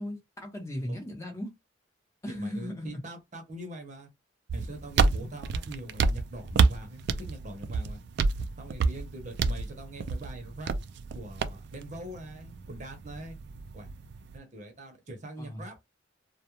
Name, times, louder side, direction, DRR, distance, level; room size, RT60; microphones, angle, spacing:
voice 1, 0.0-1.5 2.2-3.0 15.4-15.6, left 1 dB, 15° left, 0.9 m, -37 dB
voice 2, 2.3-4.1 4.5-8.0 8.6-10.7 11.1-13.4 13.7-13.9 14.3-16.0, right 1 dB, 40° right, 0.7 m, -43 dB
sound 1, 4.5-14.4, right 4 dB, 60° right, 0.3 m, -29 dB
2.3 x 2.1 x 2.9 m
head